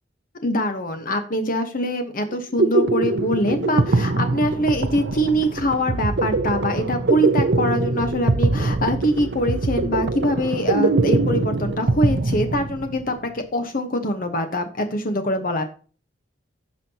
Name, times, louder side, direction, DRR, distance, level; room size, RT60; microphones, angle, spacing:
voice 1, 0.4-15.6, equal, 50° left, 6 dB, 1.1 m, -24 dB
sound 1, 2.3-13.1, right 3 dB, 65° right, 0.8 m, -22 dB
15.0 x 5.6 x 2.9 m, 0.38 s
head